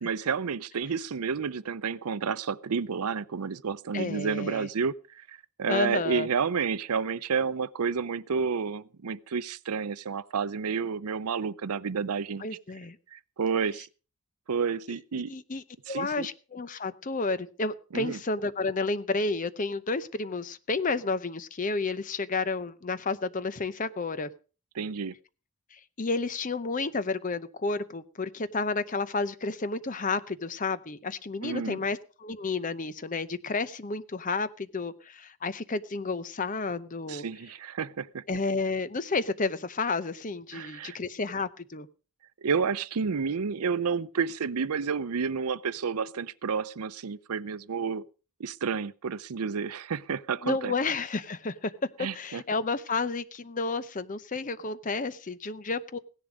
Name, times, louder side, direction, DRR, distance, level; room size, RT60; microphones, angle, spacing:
voice 1, 0.0-4.9 5.3-12.5 13.1-13.9 14.5-15.3 15.9-16.3 17.9-18.2 24.7-25.1 31.4-31.8 37.1-38.2 40.5-41.0 42.4-48.0 48.4-50.7 52.0-52.4, right 6 dB, 85° right, 0.6 m, -30 dB
voice 2, 3.9-4.7 5.7-6.3 12.4-13.0 15.3-24.3 25.7-37.2 38.3-41.9 50.4-51.7 52.1-56.0, left 3 dB, 35° left, 0.7 m, -31 dB
16.5 x 10.5 x 5.1 m
head